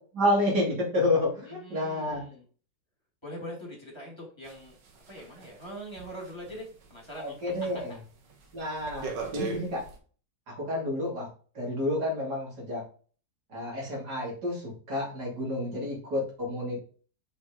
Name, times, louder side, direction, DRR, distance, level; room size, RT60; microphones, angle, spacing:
voice 1, 0.1-2.2 7.2-8.0 8.5-9.8 10.5-11.3 11.6-12.8 13.5-16.8, left 1 dB, 65° right, -4 dB, 3.5 m, -29 dB
voice 2, 1.5-2.4 3.2-4.7 5.1-7.4 7.7-8.0, equal, 15° left, -3 dB, 2.6 m, -42 dB
sound 1, 4.4-7.2 7.6-7.9 8.3-10.0, right 3 dB, 85° right, 1.8 m, -39 dB
5.7 x 5.1 x 4.0 m, 0.41 s
omnidirectional pair, 1.9 m